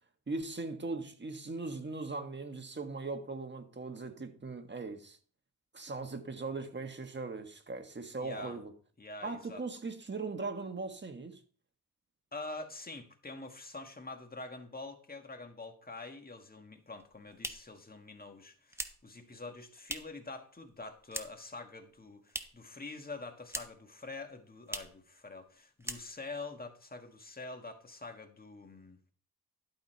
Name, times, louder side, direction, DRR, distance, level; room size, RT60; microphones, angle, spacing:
voice 1, 0.3-5.2 5.7-8.7 9.2-11.4, right 3 dB, 30° right, 1.5 m, -39 dB
voice 2, 8.2-8.6 9.0-9.6 12.3-29.0, left 3 dB, 25° left, 1.7 m, -46 dB
sound 1, 16.8-20.3 20.6-21.6 21.8-22.7 23.0-23.9 24.2-24.3 24.6-25.0 25.4-25.5 25.8-26.4, right 1 dB, 5° right, 1.0 m, -43 dB
11.5 x 5.6 x 4.6 m
cardioid pair, 75°, 35 cm